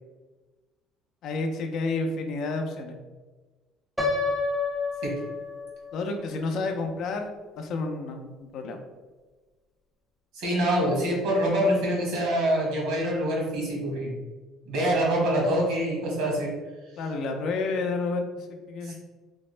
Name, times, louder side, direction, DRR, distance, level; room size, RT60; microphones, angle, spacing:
voice 1, 1.2-3.0 5.9-7.3 7.6-8.8 17.0-18.9, left 3 dB, 60° left, 4 dB, 0.4 m, -30 dB
Piano, 4.0-5.9, left 3 dB, 5° right, 0.5 m, -28 dB
voice 2, 10.3-14.2 14.7-16.5 18.8-18.9, equal, 80° right, -2 dB, 1.2 m, -25 dB
3.5 x 2.1 x 3.1 m, 1.3 s
cardioid pair, 120°, 0 cm